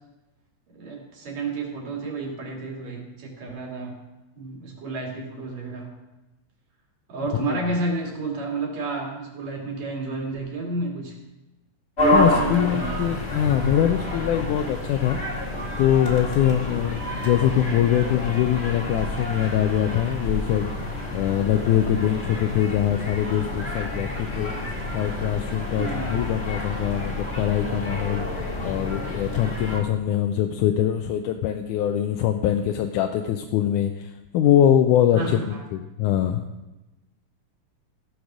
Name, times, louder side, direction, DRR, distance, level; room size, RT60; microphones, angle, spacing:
voice 1, 0.7-4.0 4.4-5.9 7.1-11.2 12.3-13.0 16.7-16.8 25.7-26.3 35.1-35.6, right 3 dB, 60° right, -1 dB, 3.5 m, -31 dB
sound 1, 12.0-29.8, left 1 dB, 25° left, 1.9 m, -29 dB
voice 2, 12.1-15.2 15.8-20.7 21.1-24.5 24.9-28.3 28.6-36.4, left 10 dB, 80° left, 5 dB, 2.0 m, -23 dB
15.5 x 6.5 x 6.1 m, 1.0 s
omnidirectional pair, 3.6 m